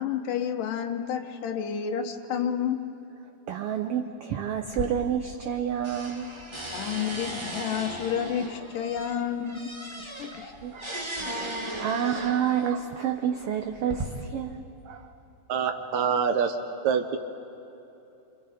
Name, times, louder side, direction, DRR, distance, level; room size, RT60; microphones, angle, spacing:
voice 1, 0.0-2.8 6.7-9.7 10.0-10.5, left 8 dB, 80° left, 6 dB, 2.7 m, -30 dB
voice 2, 3.5-6.3 8.8-8.9 10.3-11.0 11.4-15.1, right 8 dB, 85° right, 5 dB, 1.3 m, -29 dB
sound 1, 4.7-5.6 5.8-12.7 13.4-14.0, right 1 dB, 50° right, 0.3 m, -37 dB
voice 3, 15.5-16.6 16.8-17.2, right 6 dB, 70° right, 6 dB, 2.0 m, -25 dB
28.5 x 27.0 x 5.1 m, 2.9 s
omnidirectional pair, 3.8 m